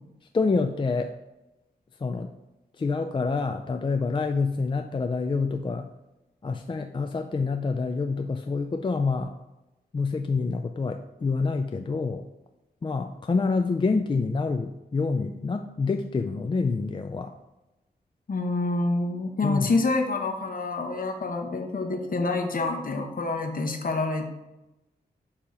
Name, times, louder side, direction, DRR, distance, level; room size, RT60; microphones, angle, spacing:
voice 1, 0.3-1.1 2.0-2.3 2.8-5.9 6.4-9.3 9.9-12.2 12.8-17.3 19.4-19.7, left 4 dB, 30° left, 6 dB, 0.4 m, -27 dB
voice 2, 18.3-24.3, left 3 dB, 55° left, 3 dB, 1.0 m, -27 dB
6.7 x 2.9 x 5.2 m, 0.98 s
cardioid pair, 65°, 17 cm